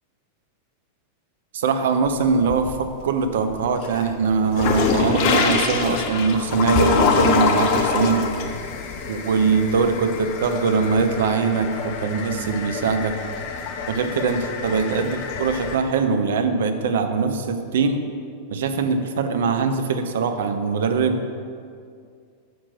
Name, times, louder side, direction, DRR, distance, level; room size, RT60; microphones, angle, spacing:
voice 1, 1.5-8.3 9.1-13.1 13.9-18.0 18.5-21.2, right 5 dB, 60° right, 7 dB, 0.6 m, -22 dB
sound 1, 2.0-3.0 3.4-15.8, left 5 dB, 45° left, 0.7 m, -25 dB
6.0 x 5.1 x 6.1 m, 2.3 s
figure-of-eight pair, 90°, 0 cm